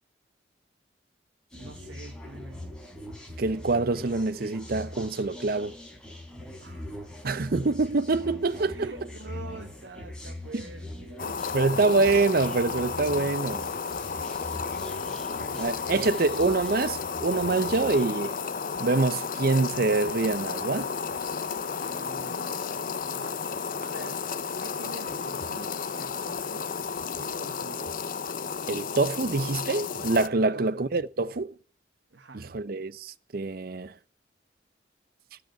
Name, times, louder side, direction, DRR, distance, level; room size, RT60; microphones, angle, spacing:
sound 1, 1.5-18.0, left 1 dB, 5° left, 4.2 m, -42 dB
voice 1, 1.5-2.7 6.6-7.4 8.6-11.7 14.7-16.2 21.9-22.6 23.1-24.2 24.6-26.7 27.2-28.0 30.3-30.9 32.1-32.5, right 3 dB, 80° right, 1.2 m, -46 dB
voice 2, 3.4-5.8 7.2-8.9 10.5-10.6 11.5-13.7 15.6-18.3 18.8-20.9 28.7-31.5 32.3-33.9, right 3 dB, 55° right, 0.6 m, -25 dB
sound 2, 11.2-30.3, left 5 dB, 50° left, 0.6 m, -33 dB
13.0 x 6.0 x 8.7 m
head